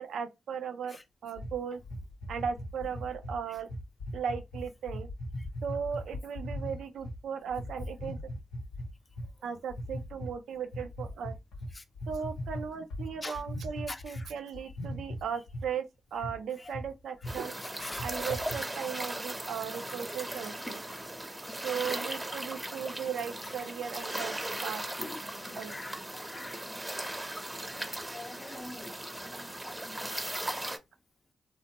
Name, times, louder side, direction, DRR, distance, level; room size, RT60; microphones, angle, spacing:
voice 1, 0.0-1.8 2.3-3.7 4.1-5.1 5.6-8.2 9.4-11.3 12.1-15.9 16.1-17.5 18.0-20.8 21.6-24.3 24.6-24.8 25.5-25.7, right 7 dB, 85° right, 0.4 m, -37 dB
sound 1, 1.4-7.2 7.5-9.3 9.7-10.3 10.7-14.3 14.5-15.7 16.2-16.3 16.7-16.9 17.2-17.4 17.8-18.6, left 1 dB, 85° left, 0.7 m, -39 dB
voice 2, 13.9-14.3 16.6-16.7 17.2-17.3 17.6-18.1 18.8-19.0 20.0-20.3 21.5-21.8 23.4-23.7 24.9-26.8 27.2-27.3 27.7-30.1 30.4-30.7, left 2 dB, 35° left, 0.5 m, -46 dB
sound 2, 17.3-30.8, right 1 dB, 15° right, 0.7 m, -38 dB
2.9 x 2.1 x 2.8 m
supercardioid pair, 50°, 0 cm